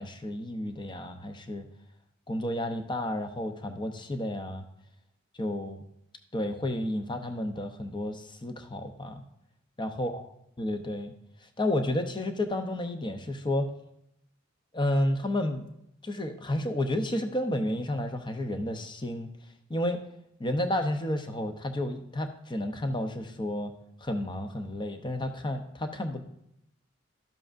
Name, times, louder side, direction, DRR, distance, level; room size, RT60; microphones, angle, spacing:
voice 1, 0.0-1.6 2.3-4.7 5.4-5.8 6.3-9.2 9.8-10.2 10.6-11.1 11.4-13.7 14.7-15.7 16.0-19.3 19.7-20.0 20.4-23.7 24.0-26.2, left 1 dB, 25° left, 6 dB, 0.7 m, -31 dB
12.0 x 7.6 x 2.5 m, 0.79 s
head